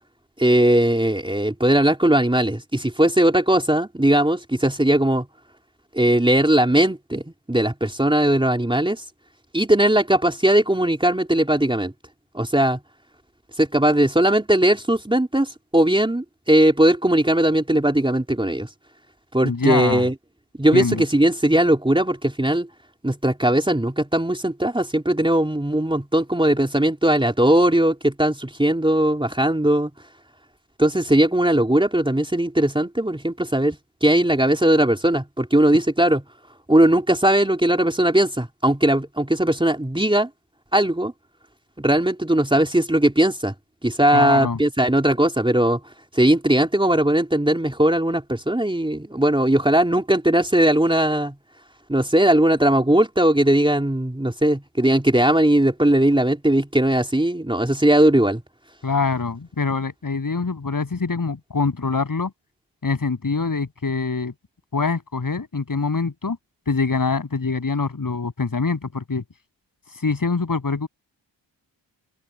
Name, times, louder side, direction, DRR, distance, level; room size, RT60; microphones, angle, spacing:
voice 1, 0.4-5.3 5.9-9.0 9.5-11.9 12.3-12.8 13.6-18.7 19.3-20.1 20.6-22.7 23.0-29.9 30.8-36.2 36.7-40.3 40.7-41.1 41.8-43.5 43.8-45.8 46.1-51.4 51.9-58.4, right 1 dB, 10° right, 3.8 m, -19 dB
voice 2, 19.4-20.1 20.7-21.0 44.1-44.6 58.8-62.3 62.8-64.3 64.7-66.4 66.7-69.2 70.0-70.9, left 4 dB, 45° left, 7.7 m, -24 dB
cardioid pair, 60°, 45 cm